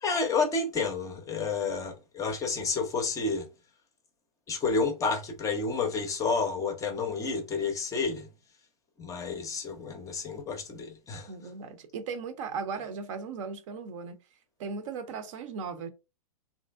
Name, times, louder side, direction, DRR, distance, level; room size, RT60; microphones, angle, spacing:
voice 1, 0.0-3.5 4.5-8.3 9.0-11.3, left 4 dB, 15° left, 0.6 m, -30 dB
voice 2, 11.3-14.2 14.6-15.9, right 5 dB, 55° right, 0.7 m, -37 dB
3.1 x 2.6 x 2.4 m
hypercardioid pair, 130°, 19 cm